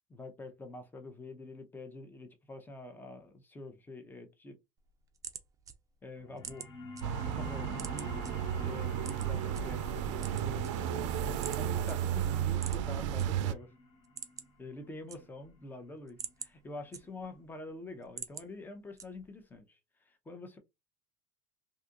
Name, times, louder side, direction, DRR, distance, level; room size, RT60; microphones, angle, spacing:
voice 1, 0.1-4.6 6.0-6.7 7.1-8.2 8.6-10.0 10.3-10.7 11.2-13.7 14.6-19.8 20.1-20.6, left 2 dB, 15° left, 0.7 m, -46 dB
sound 1, 4.8-7.0 7.4-8.3 9.0-9.6 10.1-11.1 11.4-11.6 11.9-12.0 12.5-13.3 13.6-13.7 14.0-14.6 14.9-15.6 16.0-17.4 17.8-18.5 19.0-19.4, right 7 dB, 20° right, 0.5 m, -45 dB
sound 2, 6.2-17.3, left 2 dB, 35° left, 1.0 m, -50 dB
sound 3, 7.0-13.5, right 9 dB, 85° right, 0.4 m, -33 dB
2.7 x 2.4 x 3.7 m
supercardioid pair, 125°, 15 cm